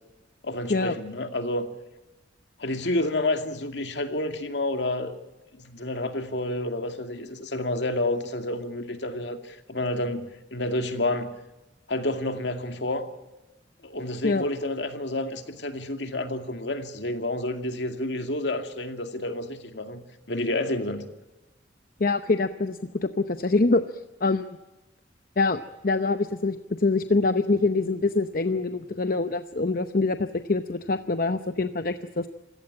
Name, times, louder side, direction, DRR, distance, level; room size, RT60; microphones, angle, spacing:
voice 1, 0.4-1.7 2.6-5.2 5.6-10.2 10.5-11.3 11.9-13.1 13.8-21.1, left 1 dB, 70° left, 6 dB, 2.3 m, -29 dB
voice 2, 22.0-23.8 24.2-24.6 25.4-32.3, left 3 dB, 50° left, 10 dB, 0.8 m, -25 dB
27.0 x 16.5 x 8.7 m, 1.1 s
head